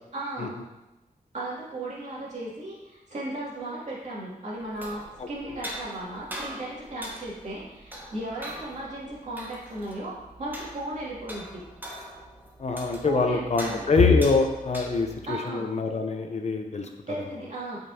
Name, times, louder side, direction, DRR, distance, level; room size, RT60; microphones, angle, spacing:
voice 1, 0.1-0.5 1.3-11.6 13.0-13.9 15.3-15.7 17.1-17.8, right 1 dB, 50° right, -7 dB, 2.5 m, -36 dB
sound 1, 4.6-15.3, right 1 dB, 15° right, 1.0 m, -42 dB
voice 2, 12.6-16.9, left 4 dB, 50° left, 4 dB, 0.6 m, -24 dB
8.9 x 5.2 x 2.8 m, 1.0 s
wide cardioid pair, 145°, 15 cm